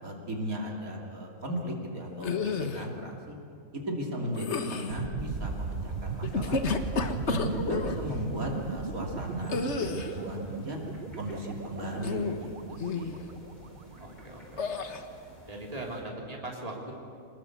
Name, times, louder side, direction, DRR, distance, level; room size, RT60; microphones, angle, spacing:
voice 1, 0.0-3.4 3.7-6.8 7.2-10.8 11.2-13.2, equal, 70° right, 0 dB, 3.3 m, -36 dB
sound 1, 2.2-2.9 4.3-5.0 6.2-8.0 9.5-10.2 12.0-12.5 12.8-13.2 14.6-15.0, left 4 dB, 50° left, 1.5 m, -31 dB
sound 2, 4.9-13.8, right 5 dB, 45° right, 0.9 m, -37 dB
sound 3, 5.2-16.0, right 1 dB, 30° left, 4.8 m, -51 dB
voice 2, 14.0-14.9 15.5-16.9, right 1 dB, 25° right, -1 dB, 3.3 m, -40 dB
25.5 x 20.0 x 8.2 m, 2.4 s
omnidirectional pair, 1.6 m